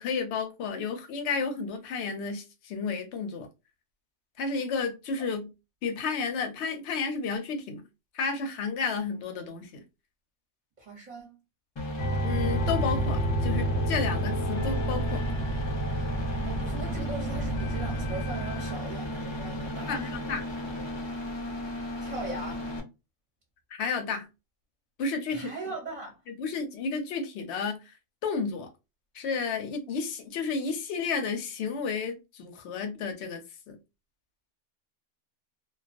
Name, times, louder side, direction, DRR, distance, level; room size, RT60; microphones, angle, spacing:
voice 1, 0.0-3.5 4.4-5.5 5.8-7.8 8.1-9.8 12.2-15.2 19.9-20.4 23.7-24.3 25.0-25.5 26.4-27.8 28.2-28.7 29.1-33.8, left 5 dB, 70° left, 0.9 m, -32 dB
voice 2, 10.8-11.4 16.4-20.2 22.0-22.7 25.3-26.2, right 3 dB, 40° right, 0.7 m, -39 dB
sound 1, 11.8-22.8, equal, 35° left, 0.4 m, -35 dB
sound 2, 12.0-18.7, right 1 dB, 90° left, 1.0 m, -30 dB
2.3 x 2.2 x 2.4 m
omnidirectional pair, 1.2 m